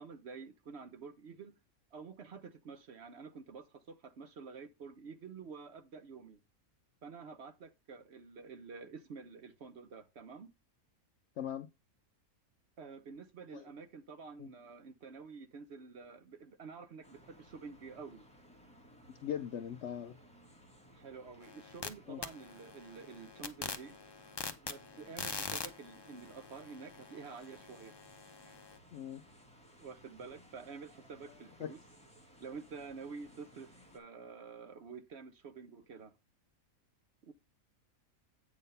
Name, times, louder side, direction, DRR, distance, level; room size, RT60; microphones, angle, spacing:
voice 1, 0.0-1.5 1.9-6.4 7.0-10.5 12.8-18.2 20.9-24.0 24.6-28.0 28.4-28.6 29.8-31.8 32.4-36.1 37.2-37.3, right 5 dB, 55° right, 0.9 m, -49 dB
voice 2, 11.4-11.7 13.5-13.7 14.4-14.5 19.2-20.2 22.1-22.2 28.9-29.2 31.6-31.7, left 9 dB, 70° left, 0.7 m, -40 dB
sound 1, 17.0-34.0, equal, 5° left, 1.6 m, -60 dB
sound 2, 21.4-21.9 22.2-28.8, left 4 dB, 35° left, 0.4 m, -44 dB
8.5 x 3.7 x 5.4 m
omnidirectional pair, 1.6 m